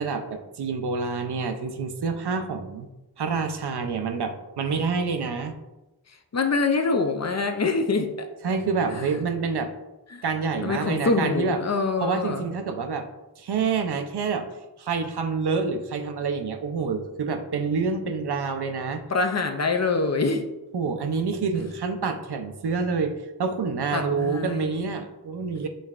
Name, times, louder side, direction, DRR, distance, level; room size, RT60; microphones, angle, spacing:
voice 1, 0.0-2.9 3.2-5.5 8.4-9.7 10.2-11.6 12.0-13.1 13.4-14.5 14.8-19.0 20.7-23.1 23.4-25.7, right 5 dB, 75° right, 7 dB, 0.5 m, -27 dB
voice 2, 6.3-8.3 8.9-9.0 10.1-10.2 10.6-12.5 19.1-20.4 23.9-24.9, left 3 dB, 45° left, 6 dB, 0.4 m, -25 dB
5.3 x 3.2 x 2.4 m, 1.0 s
wide cardioid pair, 65°, 40 cm